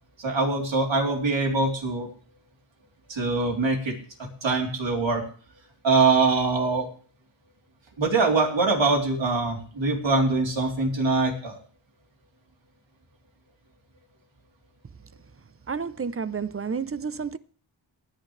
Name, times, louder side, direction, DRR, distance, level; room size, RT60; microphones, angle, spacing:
voice 1, 0.2-2.1 3.1-3.9 4.2-5.2 5.8-6.9 8.0-11.6, right 3 dB, 70° right, 3.6 m, -23 dB
voice 2, 15.7-17.4, right 5 dB, 30° right, 0.7 m, -30 dB
19.5 x 10.5 x 3.3 m
cardioid pair, 75°, 46 cm